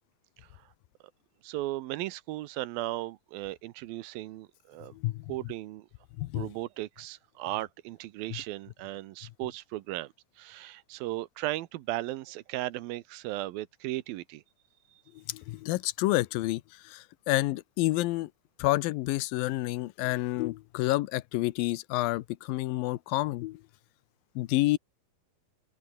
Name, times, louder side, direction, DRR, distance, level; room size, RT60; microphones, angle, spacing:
voice 1, 1.4-4.9 5.3-5.9 6.3-14.4, right 16 dB, 80° right, 2.6 m, -36 dB
voice 2, 4.9-5.2 6.2-6.5 15.2-18.3 18.6-23.6 24.4-24.8, left 18 dB, 80° left, 2.5 m, -29 dB
open air
omnidirectional pair, 4.3 m